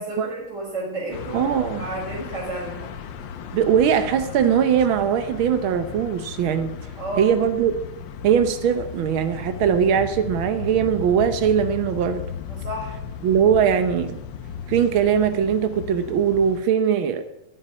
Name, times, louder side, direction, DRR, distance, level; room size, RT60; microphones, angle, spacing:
voice 1, 0.0-1.5 1.8-2.9 7.0-7.3 12.5-12.9, right 1 dB, 60° right, -8 dB, 5.1 m, -31 dB
sound 1, 1.1-16.6, left 7 dB, 70° left, 1.5 m, -36 dB
voice 2, 1.3-1.9 3.5-6.7 7.2-7.8 8.2-12.2 13.2-14.2 14.7-17.2, right 8 dB, 80° right, 9 dB, 1.8 m, -20 dB
11.5 x 8.0 x 9.6 m, 0.87 s
omnidirectional pair, 2.2 m